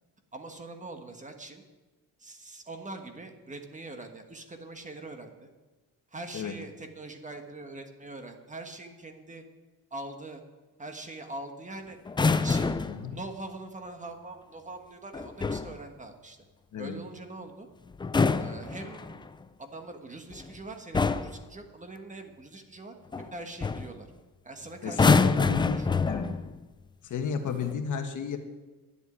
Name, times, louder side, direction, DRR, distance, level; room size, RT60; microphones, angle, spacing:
voice 1, 0.3-1.6 2.2-5.5 6.1-9.4 9.9-10.4 10.8-12.0 12.4-16.4 16.8-17.7 18.4-19.3 19.6-24.1 24.4-26.0, right 2 dB, 20° right, 5 dB, 1.3 m, -43 dB
sound 1, 12.1-13.0 15.1-15.8 17.9-19.3 20.3-20.6 20.9-21.4 23.1-23.3 23.6-23.9 24.9-26.5 27.5-27.7, left 4 dB, 15° left, 0.3 m, -26 dB
voice 2, 12.9-13.2 16.7-16.9 24.8-26.3 27.0-28.4, left 6 dB, 55° left, 6 dB, 1.4 m, -32 dB
11.0 x 8.1 x 9.8 m, 1.2 s
cardioid pair, 145°, 36 cm